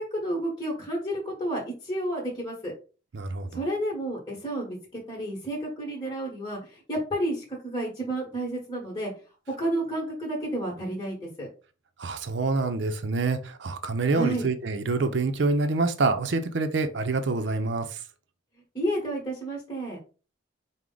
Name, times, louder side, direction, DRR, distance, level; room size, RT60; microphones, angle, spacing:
voice 1, 0.0-2.7 3.5-9.1 9.6-11.5 14.1-14.5 18.7-20.0, right 1 dB, 20° left, 1.1 m, -31 dB
voice 2, 3.1-3.5 12.0-18.0, right 3 dB, 65° right, 0.5 m, -26 dB
4.7 x 2.1 x 3.8 m
head